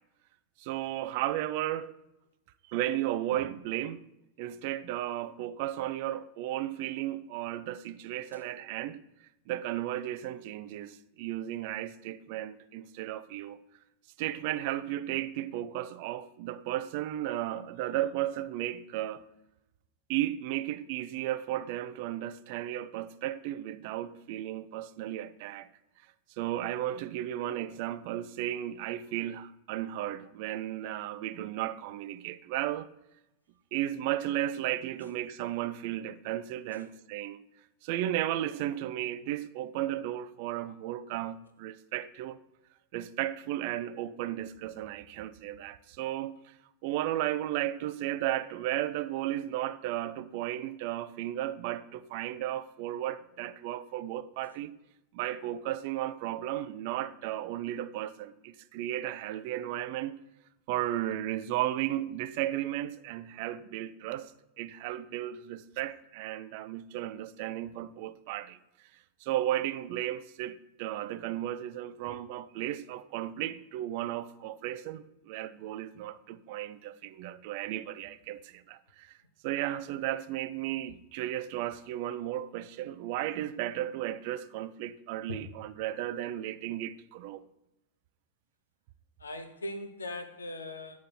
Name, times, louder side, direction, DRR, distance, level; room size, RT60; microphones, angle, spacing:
voice 1, 0.6-1.9 2.7-4.0 4.4-9.0 9.5-13.6 14.2-19.2 20.1-25.7 26.4-32.9 33.7-37.4 37.8-42.4 42.9-46.5 46.8-54.7 55.1-60.2 60.7-64.3 64.6-68.6 69.2-79.1 79.4-87.4, right 13 dB, 45° right, 0.3 m, -34 dB
voice 2, 89.2-91.0, left 1 dB, 75° left, 0.7 m, -40 dB
8.6 x 3.1 x 5.6 m
figure-of-eight pair, 90°, 0 cm